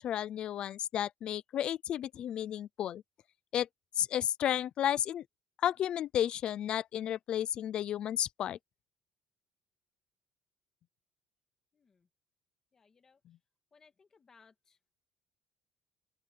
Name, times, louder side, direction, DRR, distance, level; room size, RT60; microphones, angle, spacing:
voice 1, 0.0-3.0 3.5-3.7 4.0-5.2 5.6-8.6, left 10 dB, 45° left, 0.6 m, -32 dB
voice 2, 12.7-13.2 13.7-14.5, left 5 dB, 25° left, 2.4 m, -63 dB
open air
cardioid pair, 155°, 2 cm